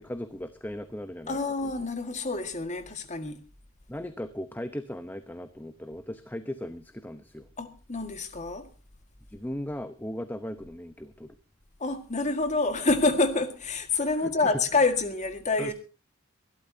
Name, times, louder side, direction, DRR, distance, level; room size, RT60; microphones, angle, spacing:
voice 1, 0.0-1.7 3.9-7.5 9.3-11.3 14.2-14.6 15.6-15.7, left 1 dB, 10° left, 0.8 m, -37 dB
voice 2, 1.3-3.4 7.6-8.7 11.8-15.7, left 3 dB, 35° left, 1.8 m, -27 dB
24.0 x 12.5 x 2.8 m
head